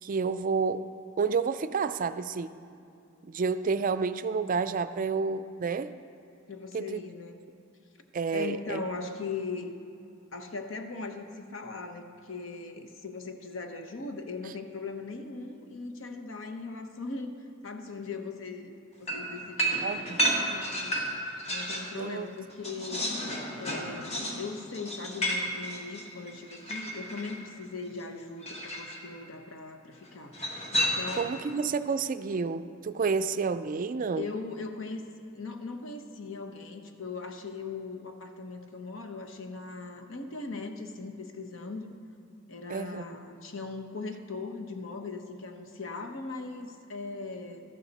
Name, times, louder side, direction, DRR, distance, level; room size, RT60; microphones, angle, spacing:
voice 1, 0.0-0.9 1.2-2.5 3.2-5.9 6.7-7.0 8.1-8.8 19.8-20.2 21.9-22.3 31.2-34.3 42.7-43.0, right 5 dB, 45° right, 12 dB, 0.4 m, -30 dB
voice 2, 6.5-7.4 8.3-9.7 10.3-18.7 19.0-21.0 21.5-23.1 23.6-30.3 30.8-31.3 34.2-35.0 35.3-41.9 42.5-47.6, left 4 dB, 85° left, 6 dB, 1.0 m, -39 dB
sound 1, 19.1-22.0 22.3-27.4 28.4-29.0 30.3-31.4, equal, 35° left, 1.5 m, -32 dB
13.0 x 12.0 x 4.1 m, 2.6 s
head